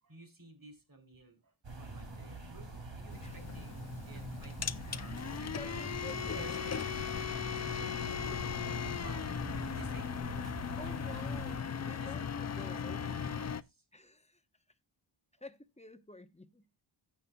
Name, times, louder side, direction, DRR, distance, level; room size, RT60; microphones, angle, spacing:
voice 1, 0.0-5.9 6.3-8.0 9.0-9.3 9.5-10.8 11.8-13.8, right 2 dB, 40° right, 3.4 m, -55 dB
sound 1, 1.6-11.6, right 2 dB, 60° right, 2.8 m, -45 dB
sound 2, 3.1-13.6, left 7 dB, 35° left, 0.4 m, -38 dB
voice 2, 5.6-6.5 10.8-13.2 13.9-14.4 15.4-16.6, left 2 dB, 15° left, 0.9 m, -50 dB
16.0 x 6.9 x 2.3 m
wide cardioid pair, 85°, 49 cm